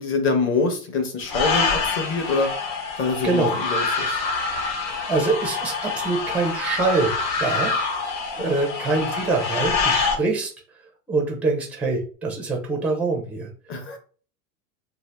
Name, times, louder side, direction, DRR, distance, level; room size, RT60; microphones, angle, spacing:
voice 1, 0.0-2.5 3.0-4.2 8.4-8.5 13.7-14.0, left 4 dB, 25° left, 6 dB, 0.8 m, -25 dB
sound 1, 1.3-10.2, left 4 dB, 85° left, 1.3 m, -26 dB
voice 2, 3.2-3.6 4.8-7.1 7.4-10.5 11.1-13.5, right 3 dB, 5° right, 1 dB, 0.4 m, -25 dB
2.7 x 2.5 x 3.3 m, 0.40 s
hypercardioid pair, 125°, 49 cm